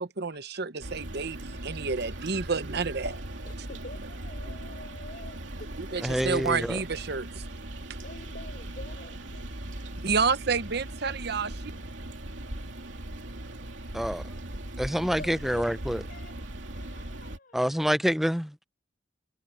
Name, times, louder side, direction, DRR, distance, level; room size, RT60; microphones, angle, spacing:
voice 1, 0.0-3.1 5.9-7.4 10.0-11.7, right 5 dB, 55° right, 1.0 m, -29 dB
sound 1, 0.8-17.4, right 1 dB, 75° right, 2.8 m, -39 dB
voice 2, 3.4-6.0 7.1-7.2 8.0-10.2 15.2-17.7, left 2 dB, 50° left, 4.7 m, -49 dB
voice 3, 6.0-6.8 13.9-14.2 14.8-16.0 17.5-18.7, equal, ahead, 0.5 m, -27 dB
head